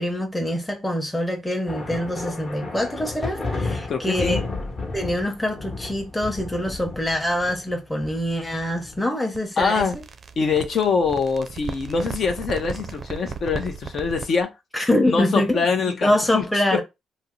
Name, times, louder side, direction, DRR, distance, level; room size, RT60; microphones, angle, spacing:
voice 1, 0.0-4.4 4.9-10.0 14.7-16.8, left 1 dB, 10° left, 0.9 m, -25 dB
sound 1, 1.7-9.0, left 3 dB, 40° left, 1.1 m, -32 dB
voice 2, 3.9-4.4 9.6-10.0 10.4-14.5 15.1-16.4 16.7-16.8, left 5 dB, 60° left, 0.7 m, -24 dB
sound 2, 9.3-14.4, right 5 dB, 45° right, 0.4 m, -36 dB
2.7 x 2.0 x 3.6 m
supercardioid pair, 65°, 0 cm